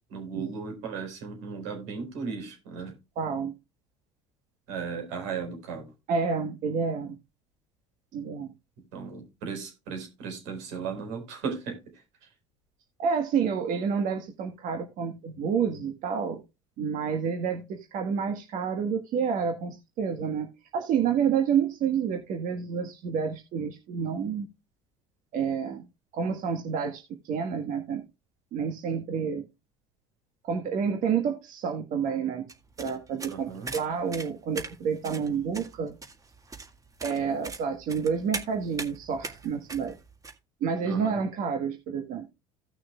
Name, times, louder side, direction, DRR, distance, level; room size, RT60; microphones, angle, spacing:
voice 1, 0.1-2.9 4.7-5.9 8.9-11.8 33.3-33.7 40.8-41.2, right 5 dB, 85° right, 3 dB, 4.4 m, -36 dB
voice 2, 3.1-3.5 6.1-7.1 8.1-8.5 13.0-16.4 16.8-24.5 25.3-25.8 26.1-28.0 28.5-29.4 30.4-32.4 32.8-36.0 37.0-40.0 40.6-42.3, right 6 dB, 60° right, 5 dB, 1.5 m, -29 dB
sound 1, 32.5-40.3, right 3 dB, 25° right, 1.8 m, -40 dB
16.5 x 6.2 x 2.3 m, 0.25 s
supercardioid pair, 95°, 15 cm